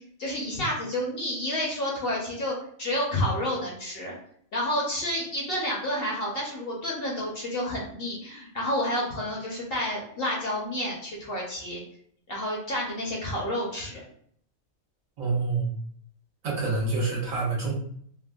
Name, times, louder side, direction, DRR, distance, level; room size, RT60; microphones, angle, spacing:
voice 1, 0.0-4.1 4.5-11.8 12.3-14.0, left 1 dB, 55° left, -3 dB, 0.8 m, -30 dB
voice 2, 15.2-15.7 16.4-17.7, right 3 dB, 75° right, -4 dB, 1.3 m, -27 dB
3.4 x 2.1 x 2.3 m, 0.63 s
omnidirectional pair, 1.4 m